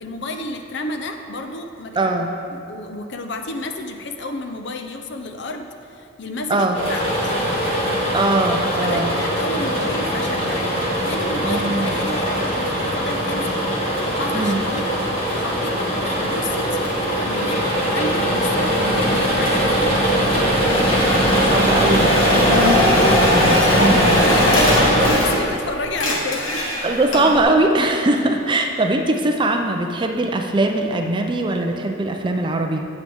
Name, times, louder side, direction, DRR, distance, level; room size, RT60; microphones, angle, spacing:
voice 1, 0.0-2.1 2.5-7.3 8.8-14.9 15.3-19.9 22.7-22.9 23.4-26.6, left 2 dB, 60° left, 5 dB, 0.6 m, -31 dB
voice 2, 2.0-2.3 6.5-6.8 8.1-9.2 11.4-11.9 14.3-14.6 18.7-19.2 21.3-24.2 26.8-32.9, right 2 dB, 25° right, 4 dB, 0.5 m, -21 dB
sound 1, 6.7-25.1, equal, 30° left, 1.9 m, -20 dB
sound 2, 20.7-25.6 25.9-27.4, left 1 dB, 75° left, 1.4 m, -21 dB
9.3 x 8.3 x 3.5 m, 2.5 s
head